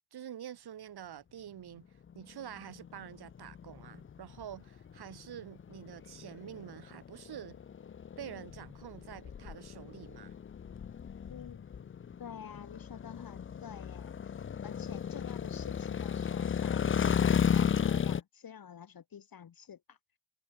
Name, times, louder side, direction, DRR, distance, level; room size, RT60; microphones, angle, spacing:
voice 1, 0.1-1.9 2.1-7.6 8.2-10.4, right 10 dB, 50° right, 2.3 m, -47 dB
sound 1, 2.1-18.2, left 7 dB, 25° left, 0.7 m, -34 dB
voice 2, 11.3-11.9 12.2-20.0, left 8 dB, 45° left, 2.4 m, -49 dB
hypercardioid pair, 50°, 49 cm